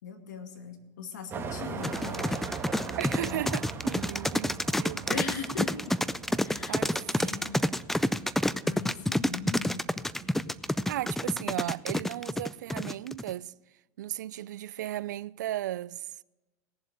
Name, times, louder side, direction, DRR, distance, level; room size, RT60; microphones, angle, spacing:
voice 1, 0.0-2.3 3.2-3.4 5.1-6.0 6.4-7.7 8.6-9.9, left 6 dB, 85° left, 2.1 m, -40 dB
sound 1, 1.3-11.4, right 5 dB, 25° right, 2.1 m, -41 dB
sound 2, 1.8-13.3, left 1 dB, 5° left, 0.4 m, -28 dB
voice 2, 3.0-5.3 6.7-7.5 10.9-13.5 14.0-16.1, right 13 dB, 85° right, 0.4 m, -36 dB
18.0 x 7.3 x 6.9 m
hypercardioid pair, 110°, 9 cm